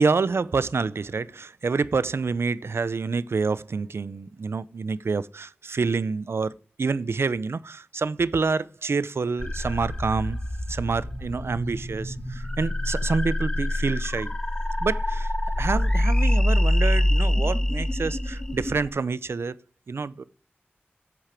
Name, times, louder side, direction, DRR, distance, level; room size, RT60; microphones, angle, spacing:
voice 1, 0.0-6.5 6.8-10.4 10.7-14.3 14.8-15.3 15.6-19.6 19.9-20.2, right 4 dB, 85° right, 0.6 m, -27 dB
sound 1, 9.4-18.9, left 1 dB, 20° left, 1.5 m, -25 dB
9.4 x 8.2 x 5.8 m
wide cardioid pair, 60°, 4 cm